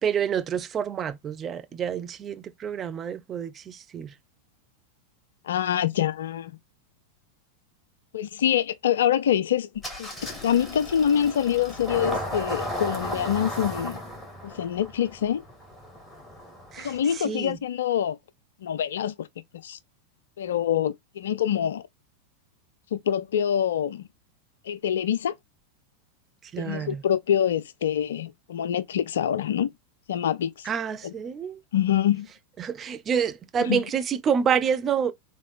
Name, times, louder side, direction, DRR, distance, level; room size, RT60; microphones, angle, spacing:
voice 1, 0.0-4.1 16.7-17.6 26.5-27.0 30.6-31.6 32.6-35.1, right 7 dB, 25° right, 0.6 m, -28 dB
voice 2, 5.4-6.6 8.1-9.7 10.0-14.0 14.4-15.4 16.8-18.2 18.6-19.3 19.5-19.8 20.4-21.9 22.9-24.0 24.7-25.4 26.6-29.7 30.1-30.7 31.0-31.1 31.7-32.3 33.6-33.8, left 9 dB, 60° left, 0.4 m, -25 dB
Engine starting, 9.8-17.1, equal, 10° left, 1.9 m, -35 dB
3.8 x 3.6 x 3.5 m
figure-of-eight pair, 90°, 0 cm